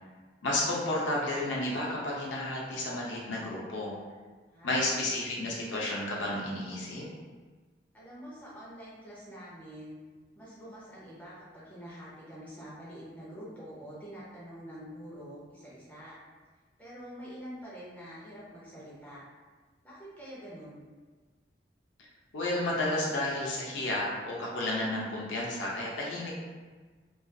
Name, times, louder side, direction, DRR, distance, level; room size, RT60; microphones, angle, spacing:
voice 1, 0.4-3.9 4.6-7.1 22.0-22.1 22.3-26.3, left 1 dB, 90° left, -4 dB, 0.6 m, -32 dB
voice 2, 4.5-5.1 7.9-10.0 10.3-16.1 16.8-19.2 19.8-20.9, equal, 10° left, -9 dB, 0.5 m, -46 dB
2.3 x 2.3 x 2.5 m, 1.4 s
head